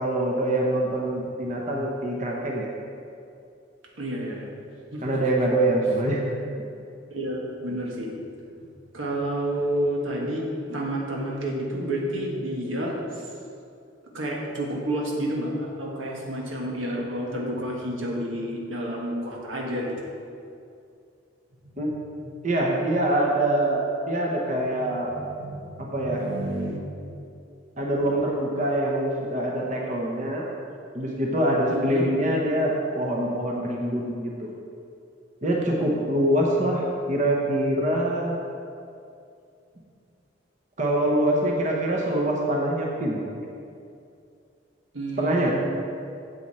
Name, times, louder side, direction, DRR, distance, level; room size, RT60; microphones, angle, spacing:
voice 1, 0.0-2.7 5.0-6.2 21.8-21.9 22.4-25.1 25.8-26.2 27.8-30.5 30.9-34.5 35.4-38.4 40.8-43.2 45.2-45.5, right 1 dB, 40° right, -2 dB, 1.0 m, -24 dB
voice 2, 4.0-4.5 4.9-5.0 7.1-8.1 8.6-8.7 8.9-13.2 14.1-20.0 21.8-21.9 22.2-22.3 24.7-27.3 31.7-32.1 44.9-45.5, right 1 dB, 90° right, -2 dB, 1.5 m, -30 dB
8.1 x 8.0 x 4.3 m, 2.5 s
head